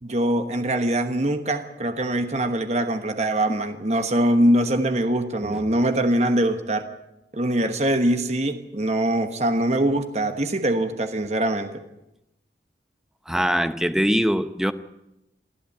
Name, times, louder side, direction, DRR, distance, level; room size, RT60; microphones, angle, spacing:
voice 1, 0.0-6.9 7.3-11.8, right 1 dB, 40° right, 1.2 m, -23 dB
voice 2, 13.3-14.7, equal, 5° right, 0.8 m, -22 dB
24.0 x 13.5 x 8.6 m
head